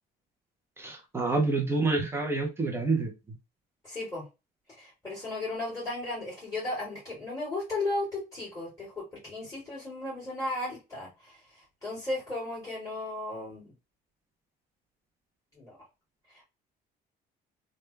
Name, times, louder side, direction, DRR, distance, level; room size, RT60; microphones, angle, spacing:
voice 1, 0.8-3.1, right 3 dB, 15° right, 0.5 m, -27 dB
voice 2, 3.8-4.2 4.7-13.7 15.5-15.8 16.3-16.4, left 2 dB, 20° left, 1.9 m, -35 dB
3.2 x 2.2 x 3.2 m
cardioid pair, 175°, 17 cm